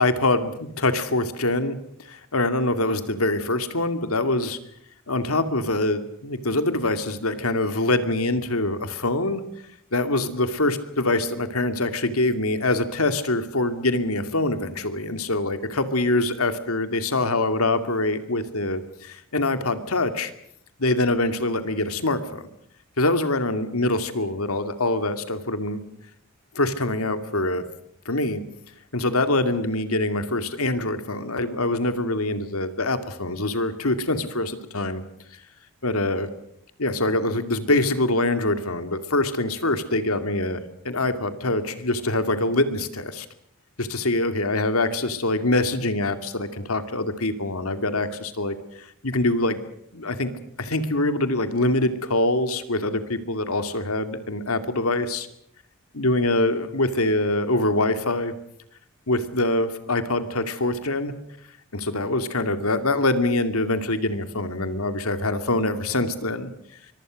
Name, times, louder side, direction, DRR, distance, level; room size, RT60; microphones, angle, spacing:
voice 1, 0.0-1.8 2.1-4.6 5.1-9.4 9.9-20.3 20.8-22.4 23.0-25.8 26.5-27.6 28.1-28.4 28.9-35.0 35.8-36.3 36.8-43.3 43.8-49.6 49.9-50.3 50.6-55.3 55.9-58.3 59.1-61.1 61.7-66.5, left 2 dB, 85° left, 9 dB, 2.5 m, -24 dB
24.5 x 23.5 x 6.4 m, 0.71 s
head